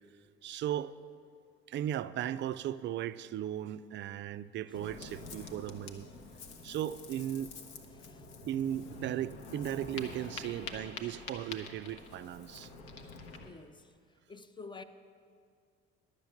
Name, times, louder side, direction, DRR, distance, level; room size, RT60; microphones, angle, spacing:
voice 1, 0.4-1.0 1.7-6.1 6.6-7.5 8.5-12.7, right 11 dB, 35° right, 0.4 m, -36 dB
Ocean, 4.7-13.5, left 3 dB, 65° left, 1.0 m, -47 dB
voice 2, 7.9-8.3 13.4-13.9 14.3-14.8, left 4 dB, 15° left, 0.5 m, -49 dB
11.5 x 6.6 x 7.3 m
figure-of-eight pair, 55°, 32 cm